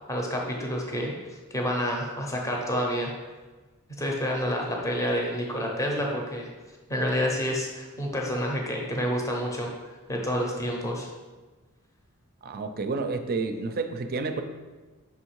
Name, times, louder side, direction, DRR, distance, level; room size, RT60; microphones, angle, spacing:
voice 1, 0.1-1.1 1.5-3.1 4.0-6.5 6.9-9.7 10.1-11.1, equal, 15° left, 0 dB, 0.7 m, -28 dB
voice 2, 12.4-14.4, right 3 dB, 45° right, 7 dB, 0.5 m, -30 dB
5.7 x 3.5 x 4.6 m, 1.3 s
head